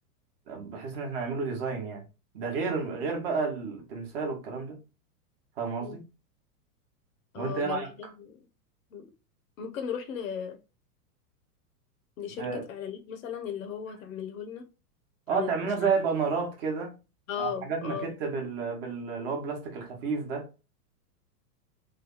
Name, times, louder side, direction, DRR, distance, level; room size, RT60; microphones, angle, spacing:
voice 1, 0.5-2.1 2.3-4.8 5.6-6.0 7.3-7.9 12.4-12.6 15.3-17.0 17.4-20.5, right 5 dB, 35° right, 1.0 m, -31 dB
voice 2, 7.3-8.4 8.9-9.1 9.6-10.6 12.2-14.7 15.3-15.5 15.8-15.9 17.3-18.1, left 8 dB, 60° left, 0.8 m, -36 dB
3.3 x 2.2 x 3.7 m
supercardioid pair, 160°, 47 cm